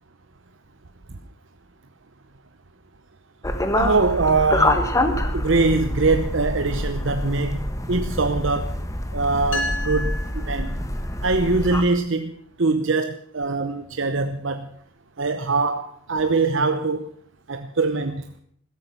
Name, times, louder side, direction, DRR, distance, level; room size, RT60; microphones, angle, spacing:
sound 1, 3.4-11.9, left 1 dB, 15° left, 1.4 m, -26 dB
voice 1, 3.7-4.9 5.3-8.8 9.1-10.8 11.2-12.3 12.6-14.7 15.2-17.1 17.5-18.2, right 3 dB, 70° right, 8 dB, 0.9 m, -23 dB
sound 2, 9.5-11.3, left 1 dB, 65° left, 3.3 m, -31 dB
16.0 x 13.5 x 5.9 m, 0.64 s
head